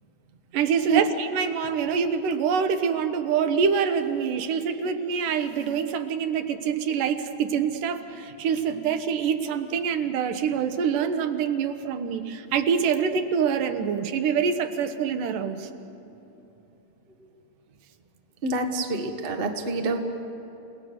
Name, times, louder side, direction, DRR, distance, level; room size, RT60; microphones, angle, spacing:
voice 1, 0.5-15.7, right 6 dB, 85° right, 8 dB, 2.7 m, -25 dB
voice 2, 18.4-20.0, right 3 dB, 50° right, 4 dB, 0.6 m, -26 dB
29.5 x 18.5 x 6.6 m, 3.0 s
omnidirectional pair, 3.7 m